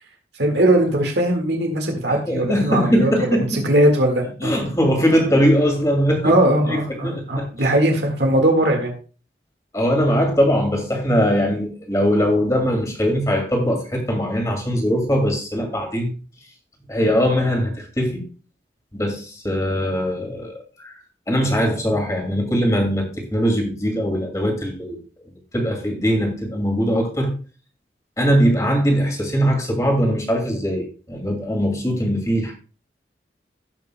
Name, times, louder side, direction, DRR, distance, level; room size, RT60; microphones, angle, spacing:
voice 1, 0.4-3.1 3.4-4.5 6.2-8.9, right 1 dB, 75° right, 1.8 m, -19 dB
voice 2, 2.1-3.7 4.4-6.3 6.7-7.5 9.7-16.1 16.9-18.2 18.9-20.9 21.3-25.0 25.5-27.3 28.2-32.5, equal, 20° left, 2.3 m, -21 dB
17.5 x 5.9 x 2.2 m
head